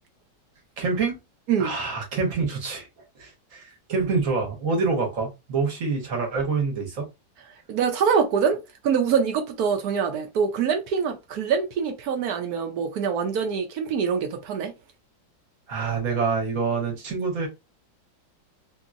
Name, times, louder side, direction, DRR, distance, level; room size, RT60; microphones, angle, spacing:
voice 1, 0.8-1.1 1.6-2.9 3.2-7.1 15.7-17.5, right 4 dB, 50° right, 1.2 m, -26 dB
voice 2, 7.7-14.7, right 6 dB, 70° right, 1.0 m, -24 dB
3.0 x 2.8 x 2.4 m
omnidirectional pair, 2.0 m